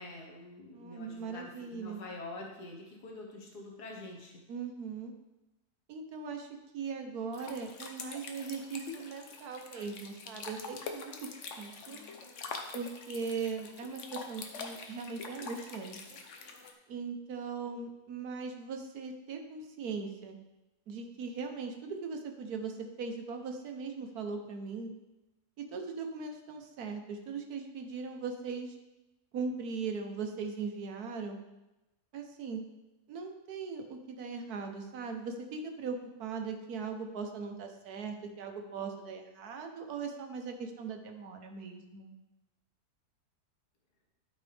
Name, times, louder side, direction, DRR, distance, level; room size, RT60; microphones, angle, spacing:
voice 1, 0.0-4.4, left 2 dB, 90° left, 0 dB, 1.9 m, -46 dB
voice 2, 0.7-2.0 4.5-5.1 5.9-6.5 6.7-11.3 11.6-12.0 12.7-16.2 16.9-20.4 20.9-24.9 25.6-28.8 29.3-31.4 32.1-32.6 33.1-42.1, right 5 dB, 75° right, 4 dB, 1.5 m, -39 dB
sound 1, 7.3-16.7, left 4 dB, 55° left, 1.1 m, -45 dB
12.5 x 5.2 x 3.4 m, 1.0 s
omnidirectional pair, 1.7 m